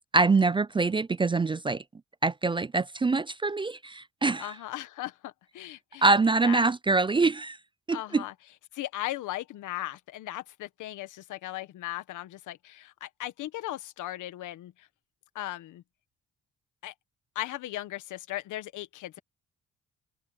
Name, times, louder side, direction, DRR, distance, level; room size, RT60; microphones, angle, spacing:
voice 1, 0.1-1.8 2.2-4.5 6.0-7.6 7.9-8.2, right 3 dB, 15° right, 0.4 m, -24 dB
voice 2, 4.4-6.0 6.4-6.6 7.9-8.3 8.7-14.9 15.3-15.8 16.8-16.9 17.3-19.2, left 15 dB, 85° left, 1.5 m, -37 dB
cardioid pair, 90°, 30 cm